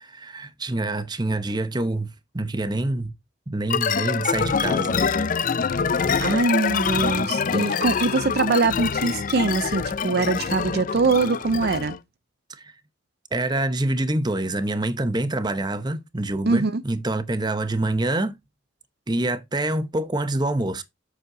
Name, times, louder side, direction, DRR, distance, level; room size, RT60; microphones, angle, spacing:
voice 1, 0.2-3.1 3.5-5.0 6.1-6.4 12.6-12.7 13.3-18.3 19.1-20.8, right 2 dB, 20° right, 0.8 m, -26 dB
sound 1, 3.7-12.0, left 6 dB, 40° left, 0.5 m, -25 dB
voice 2, 6.2-11.9 16.5-16.8, right 3 dB, 50° right, 0.5 m, -23 dB
8.1 x 6.3 x 3.8 m
head